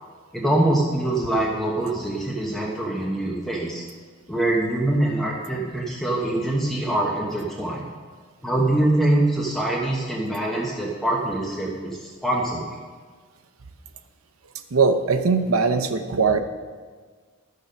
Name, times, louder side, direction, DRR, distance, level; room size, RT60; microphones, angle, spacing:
voice 1, 0.3-3.8 4.3-7.8 8.4-12.8, right 1 dB, ahead, -4 dB, 1.1 m, -24 dB
voice 2, 14.7-16.4, right 4 dB, 85° right, 8 dB, 0.7 m, -20 dB
11.5 x 6.7 x 5.2 m, 1.5 s
head